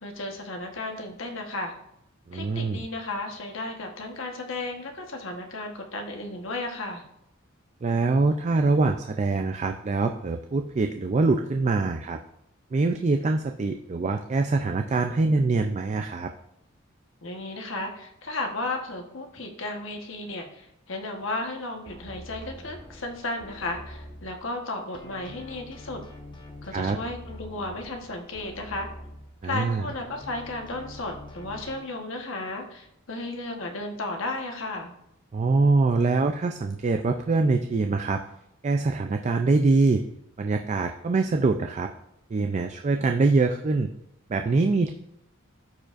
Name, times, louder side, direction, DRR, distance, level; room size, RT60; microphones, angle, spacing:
voice 1, 0.0-1.7 2.3-7.0 17.2-26.0 26.6-28.9 29.4-34.9, left 2 dB, 65° left, 3 dB, 1.2 m, -34 dB
voice 2, 2.3-2.8 7.8-12.2 12.7-16.3 26.7-27.0 29.4-29.9 35.3-38.2 38.6-40.0 40.4-41.9 42.3-43.9 44.3-44.9, right 3 dB, 35° right, 6 dB, 0.4 m, -24 dB
sound 1, 21.8-24.6 24.9-29.6 29.9-31.7, left 1 dB, 20° left, 1.1 m, -44 dB
13.5 x 4.7 x 2.5 m, 0.79 s
head